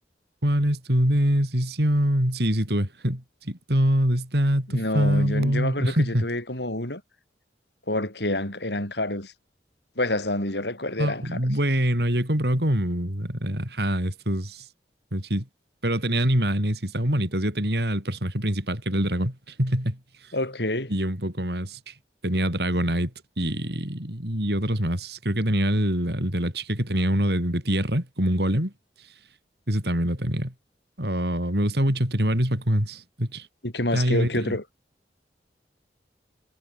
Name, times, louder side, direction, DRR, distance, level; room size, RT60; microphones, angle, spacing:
voice 1, 0.4-6.3 11.0-14.6 15.1-15.5 15.8-20.0 20.9-21.9 22.2-23.1 23.4-28.7 29.7-30.5 31.0-33.5 33.9-34.6, equal, 65° right, 7.1 m, -24 dB
voice 2, 4.7-7.0 7.9-9.3 10.0-11.4 20.3-20.9 33.6-34.6, left 1 dB, 75° left, 6.7 m, -28 dB
head